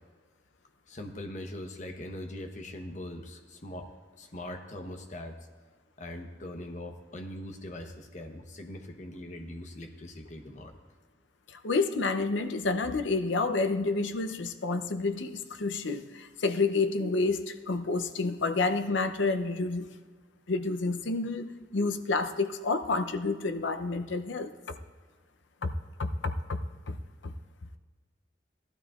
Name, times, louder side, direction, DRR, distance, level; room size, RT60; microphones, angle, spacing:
voice 1, 0.9-3.9 4.2-5.4 6.0-10.7, left 1 dB, 40° left, 4 dB, 1.0 m, -41 dB
voice 2, 11.5-20.0 20.5-24.5 25.6-25.7 26.0-26.6 26.9-27.0 27.2-27.3, left 3 dB, 80° left, 9 dB, 0.7 m, -29 dB
17.0 x 12.0 x 2.4 m, 1.5 s
head